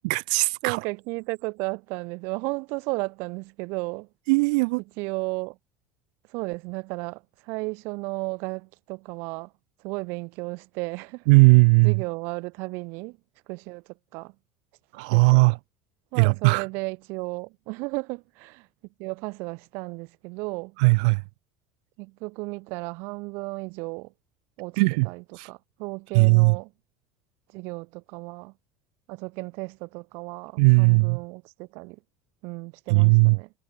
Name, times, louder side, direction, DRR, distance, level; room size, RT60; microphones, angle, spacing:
voice 1, 0.0-0.8 4.3-4.8 11.3-12.0 14.9-15.6 16.2-16.7 20.8-21.2 24.8-25.1 25.4-25.5 26.1-26.6 30.6-31.2 32.9-33.4, right 29 dB, 75° right, 2.6 m, -18 dB
voice 2, 0.6-4.1 5.0-5.6 6.3-9.5 9.8-11.2 11.8-13.2 13.5-13.8 14.1-14.3 15.1-15.4 16.1-18.7 19.0-20.8 22.0-24.1 24.6-24.8 25.0-26.7 27.5-28.5 29.1-32.0 32.4-33.5, right 28 dB, 60° right, 6.7 m, -34 dB
cardioid pair, 165°, 4 cm